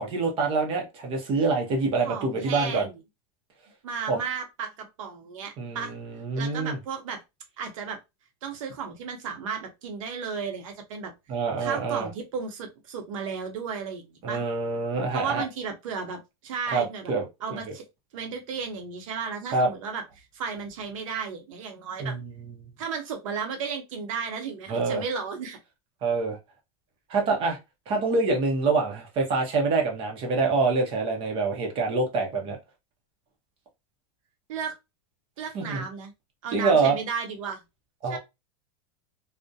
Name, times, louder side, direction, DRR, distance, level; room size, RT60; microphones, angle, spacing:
voice 1, 0.0-2.9 4.1-4.2 5.6-6.8 11.3-12.1 14.2-15.4 16.7-17.2 17.5-17.6 19.5-19.7 22.0-22.7 24.7-25.0 26.0-26.4 27.1-27.6 27.9-32.6 35.5-35.8 36.5-36.9 38.0-38.2, right 3 dB, 30° right, 0.6 m, -26 dB
voice 2, 2.0-2.9 3.8-5.9 6.3-7.2 7.6-8.0 8.4-11.1 11.6-14.4 15.1-17.1 17.4-17.8 18.1-22.2 22.8-25.6 34.5-34.7 35.4-36.1 36.4-37.6 38.0-38.2, right 6 dB, 75° right, 0.7 m, -34 dB
2.3 x 2.1 x 2.6 m
supercardioid pair, 145°, 17 cm